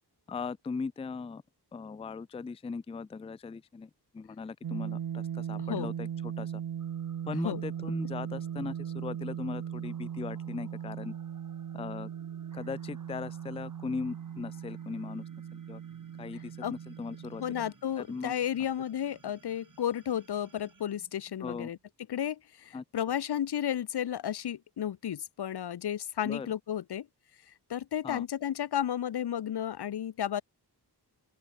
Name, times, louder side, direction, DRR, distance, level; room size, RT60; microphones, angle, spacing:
voice 1, 0.3-1.4 1.7-6.6 7.3-11.1 11.7-12.1 12.5-15.2 15.5-15.8 16.2-17.4 18.0-18.3 21.4-21.7 22.7-22.8 26.2-26.5 28.0-28.2, left 4 dB, 15° left, 0.3 m, -38 dB
sound 1, 4.6-17.7, right 9 dB, 70° right, 0.9 m, -38 dB
sound 2, 6.8-21.9, right 4 dB, 50° right, 6.2 m, -60 dB
voice 2, 17.4-21.8 22.1-27.1 27.5-30.4, left 10 dB, 75° left, 0.8 m, -33 dB
open air
wide cardioid pair, 90°, 40 cm